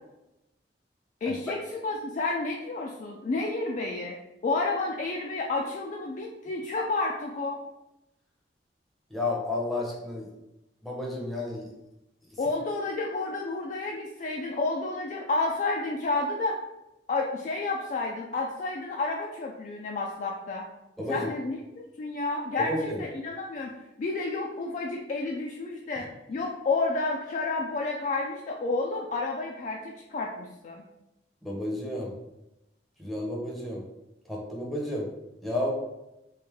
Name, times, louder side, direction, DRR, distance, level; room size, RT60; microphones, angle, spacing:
voice 1, 1.2-4.2 4.4-7.6 12.4-16.6 17.1-20.7 21.1-23.7 24.0-30.8, left 3 dB, 45° left, -1 dB, 0.3 m, -30 dB
voice 2, 9.1-10.3 10.8-11.7 21.0-21.3 22.7-23.0 31.4-32.1 33.0-33.8 34.3-35.1 35.4-35.7, left 1 dB, ahead, -4 dB, 0.6 m, -31 dB
3.2 x 2.5 x 3.5 m, 0.92 s
head